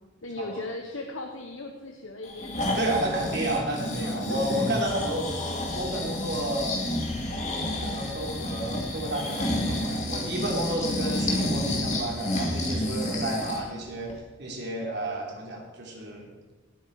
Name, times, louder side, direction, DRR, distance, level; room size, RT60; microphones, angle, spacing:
voice 1, 0.2-4.7, left 2 dB, 85° left, 2 dB, 1.2 m, -39 dB
Breathing, 2.2-13.7 14.1-14.2, left 1 dB, 35° left, 2.5 m, -30 dB
voice 2, 2.7-5.4 5.7-6.7 7.7-16.3, right 1 dB, 55° right, -1 dB, 3.5 m, -31 dB
18.0 x 8.6 x 4.8 m, 1.3 s
head